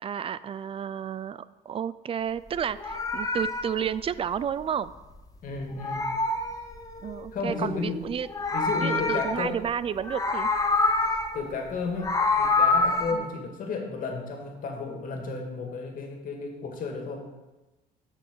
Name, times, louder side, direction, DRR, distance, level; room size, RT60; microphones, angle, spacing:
voice 1, 0.0-4.9 7.0-8.3 8.8-10.5 13.1-13.3, right 8 dB, 35° right, 16 dB, 0.3 m, -31 dB
Meow, 2.6-5.3 5.6-7.3 8.1-9.7 10.0-11.4 11.8-13.1, left 3 dB, 20° left, 1.1 m, -27 dB
voice 2, 5.4-6.1 7.3-8.1 8.5-9.6 11.3-17.3, left 4 dB, 55° left, 2 dB, 2.1 m, -33 dB
6.6 x 6.2 x 6.8 m, 1.1 s
cardioid pair, 110°, 17 cm